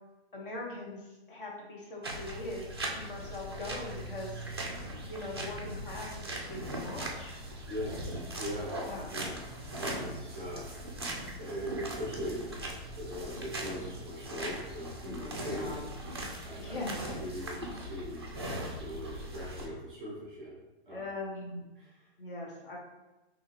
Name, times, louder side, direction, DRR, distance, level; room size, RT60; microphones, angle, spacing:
voice 1, 0.3-4.4 5.0-7.4 8.8-9.1 15.0-15.9 16.6-17.0 20.9-21.7 22.2-22.8, left 2 dB, 55° left, -2 dB, 1.3 m, -41 dB
sound 1, 2.0-19.7, right 1 dB, 25° right, 0.3 m, -40 dB
voice 2, 7.7-8.8 9.1-9.4 9.8-12.5 13.0-15.7 16.4-16.9 17.2-18.3 18.8-20.5 20.8-21.1 21.8-22.0, equal, ahead, -6 dB, 0.7 m, -40 dB
5.3 x 2.8 x 3.2 m, 1.1 s
hypercardioid pair, 175°, 33 cm